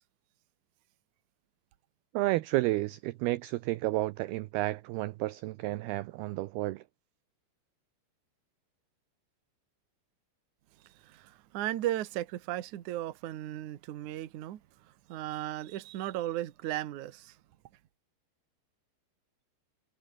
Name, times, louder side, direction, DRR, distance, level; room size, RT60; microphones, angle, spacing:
voice 1, 2.1-6.8, right 18 dB, 80° right, 2.3 m, -31 dB
voice 2, 10.9-17.4, right 14 dB, 60° right, 2.1 m, -36 dB
omnidirectional pair, 5.2 m